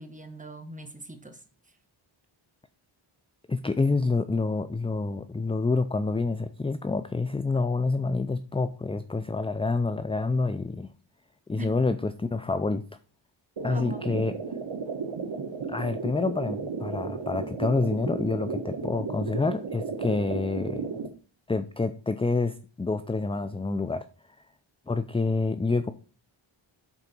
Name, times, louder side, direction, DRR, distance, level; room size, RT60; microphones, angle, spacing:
voice 1, 0.0-1.4 11.6-11.7 13.7-14.3, right 1 dB, 15° right, 6 dB, 1.3 m, -40 dB
voice 2, 3.5-10.9 11.5-12.8 13.6-14.3 15.7-20.9 21.5-24.1 24.9-25.9, left 3 dB, 15° left, 11 dB, 0.4 m, -27 dB
sound 1, 13.6-21.1, right 5 dB, 65° right, 1.3 m, -34 dB
8.3 x 3.9 x 5.9 m, 0.37 s
wide cardioid pair, 100°, 49 cm